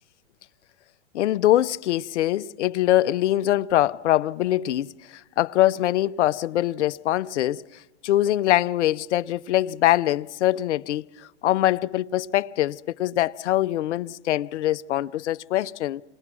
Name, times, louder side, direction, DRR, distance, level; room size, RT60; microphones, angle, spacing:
voice 1, 1.1-16.0, left 14 dB, 75° left, 0.6 m, -23 dB
29.0 x 20.0 x 6.1 m
hypercardioid pair, 130°, 36 cm